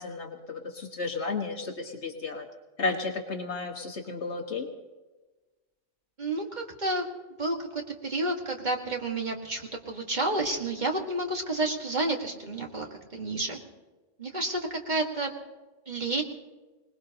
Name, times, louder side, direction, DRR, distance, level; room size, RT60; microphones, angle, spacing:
voice 1, 0.0-2.5 2.8-4.7, left 3 dB, 65° left, 2 dB, 1.7 m, -33 dB
voice 2, 6.2-7.0 7.4-13.6 14.2-15.3 15.9-16.2, right 2 dB, 40° right, 1 dB, 1.9 m, -30 dB
25.0 x 19.5 x 2.9 m, 1.2 s
omnidirectional pair, 1.2 m